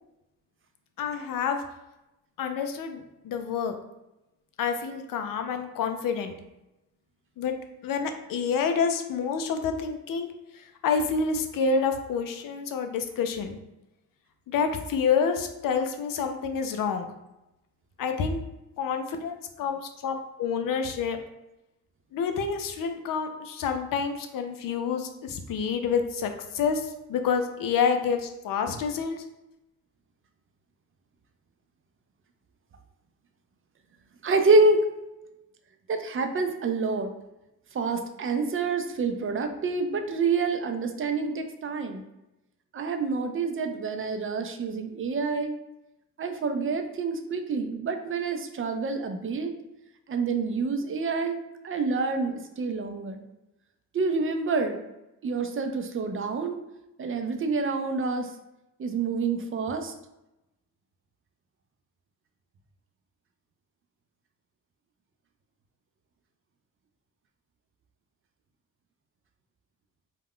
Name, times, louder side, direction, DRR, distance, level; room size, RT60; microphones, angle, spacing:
voice 1, 1.0-1.6 2.4-3.7 4.6-6.3 7.4-7.5 7.8-13.6 14.5-17.1 18.0-18.4 18.8-21.2 22.1-29.2, left 6 dB, 55° left, 6 dB, 0.5 m, -28 dB
voice 2, 34.2-34.9 35.9-37.1 37.7-42.0 42.7-45.5 46.2-49.5 50.1-51.4 51.6-53.2 53.9-54.8 55.2-56.6 57.0-58.3 58.8-59.9, right 3 dB, 35° right, 6 dB, 0.4 m, -27 dB
2.3 x 2.1 x 3.5 m, 0.93 s
supercardioid pair, 55°, 39 cm